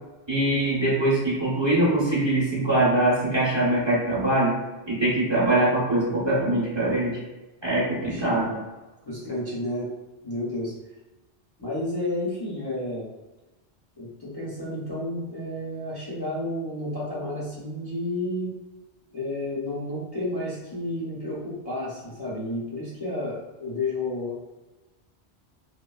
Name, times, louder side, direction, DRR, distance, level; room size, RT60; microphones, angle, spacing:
voice 1, 0.3-4.5 4.9-7.2 7.6-8.6, right 1 dB, 30° right, -7 dB, 0.8 m, -23 dB
voice 2, 7.9-8.2 9.0-9.9 10.2-10.7 11.6-13.1 14.0-18.5 19.1-24.4, left 1 dB, 25° left, -9 dB, 0.7 m, -31 dB
3.4 x 2.2 x 2.2 m, 1.1 s
omnidirectional pair, 1.1 m